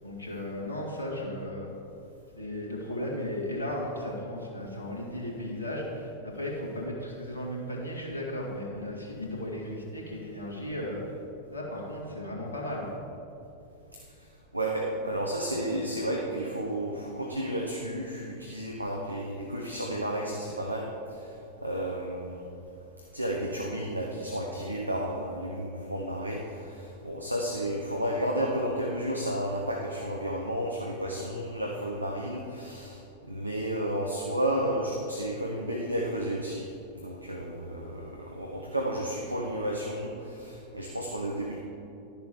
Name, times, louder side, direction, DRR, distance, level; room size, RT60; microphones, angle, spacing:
voice 1, 0.0-1.7 2.4-11.0 11.5-12.9, left 1 dB, 75° left, -3 dB, 2.0 m, -35 dB
voice 2, 14.5-20.9 21.6-22.4 23.1-33.0 33.3-36.7 37.0-41.6, right 1 dB, 85° right, 0 dB, 0.8 m, -32 dB
11.5 x 6.8 x 4.8 m, 2.8 s
figure-of-eight pair, 90°, 0 cm